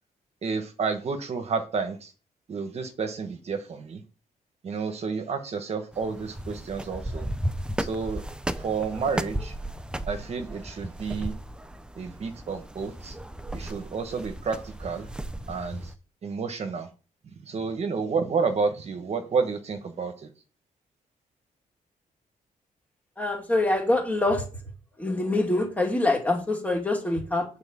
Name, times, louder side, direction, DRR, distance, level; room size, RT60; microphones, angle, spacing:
voice 1, 0.4-2.1 2.5-4.0 4.6-7.3 7.8-8.2 8.6-9.5 10.1-11.4 11.9-13.2 13.5-15.1 15.5-15.9 16.2-16.9 17.4-20.3, right 5 dB, 45° right, 6 dB, 1.2 m, -30 dB
sound 1, 5.9-15.9, right 1 dB, 5° right, 0.6 m, -35 dB
voice 2, 23.2-24.4 25.0-27.5, left 2 dB, 10° left, 1 dB, 2.6 m, -25 dB
9.0 x 4.4 x 7.2 m, 0.35 s
wide cardioid pair, 150°, 15 cm